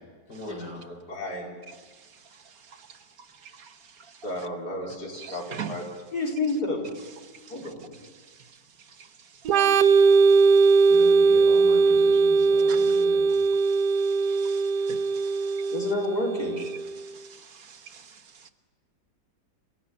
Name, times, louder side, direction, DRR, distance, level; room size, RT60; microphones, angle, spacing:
voice 1, 0.3-0.8 10.9-13.3, left 1 dB, 90° left, 6.2 m, -39 dB
voice 2, 0.9-1.5 4.2-5.8 6.1-6.9 7.5-7.9 15.7-16.6, left 2 dB, 70° left, 5.4 m, -31 dB
voice 3, 2.3-4.2 5.1-5.8 7.4-7.5 8.3-8.5 9.0-9.1 9.4-10.0 10.6-10.9 12.7-15.7 17.0-18.5, right 7 dB, 65° right, 1.6 m, -45 dB
Organ, 9.4-17.0, right 4 dB, 80° right, 1.5 m, -20 dB
30.0 x 16.5 x 9.5 m
omnidirectional pair, 1.7 m